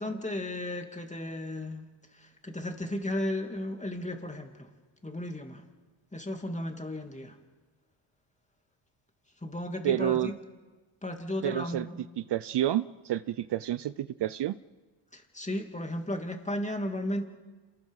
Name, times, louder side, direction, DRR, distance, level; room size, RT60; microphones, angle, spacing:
voice 1, 0.0-1.9 2.1-4.7 5.0-5.6 6.1-7.4 9.4-10.4 11.0-12.0 15.1-17.2, left 1 dB, 15° left, 4 dB, 2.7 m, -34 dB
voice 2, 9.8-10.3 11.4-11.9 12.3-14.5, right 12 dB, 55° right, 15 dB, 0.6 m, -29 dB
27.5 x 20.0 x 5.6 m, 1.3 s
cardioid pair, 80°, 50 cm